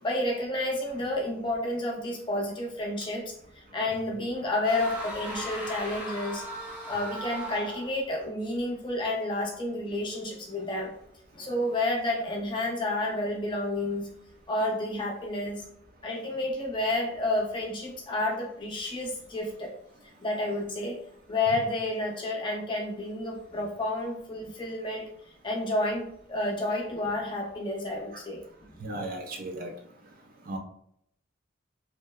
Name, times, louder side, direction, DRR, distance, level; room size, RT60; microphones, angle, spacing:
voice 1, 0.0-6.4 6.9-10.9 11.3-14.1 14.5-15.6 16.0-19.7 20.2-21.0 21.3-25.1 25.4-28.4 28.7-28.8, left 1 dB, 25° left, -1 dB, 0.5 m, -30 dB
sound 1, 4.6-8.0, right 1 dB, 10° right, 0.8 m, -37 dB
voice 2, 28.8-29.7 30.5-30.6, right 1 dB, 45° right, 3 dB, 0.4 m, -35 dB
2.8 x 2.0 x 2.2 m, 0.69 s
head